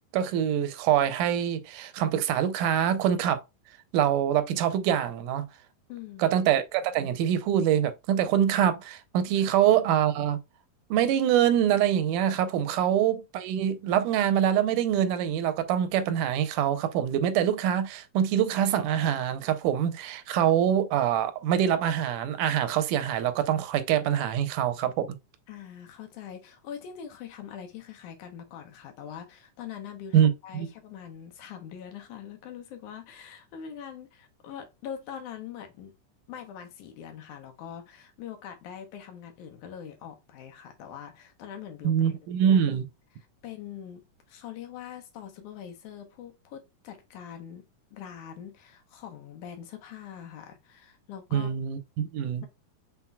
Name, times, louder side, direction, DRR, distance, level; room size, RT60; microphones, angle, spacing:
voice 1, 0.1-3.4 3.9-5.5 6.2-10.4 10.9-25.1 30.1-30.7 41.8-42.9 51.3-52.4, right 10 dB, 85° right, 2.1 m, -25 dB
voice 2, 5.9-6.4 9.4-9.6 12.7-12.8 25.5-35.9 36.3-42.2 42.5-42.6 43.4-47.7 47.9-51.5, left 9 dB, 75° left, 2.3 m, -43 dB
5.8 x 4.0 x 2.2 m
omnidirectional pair, 3.6 m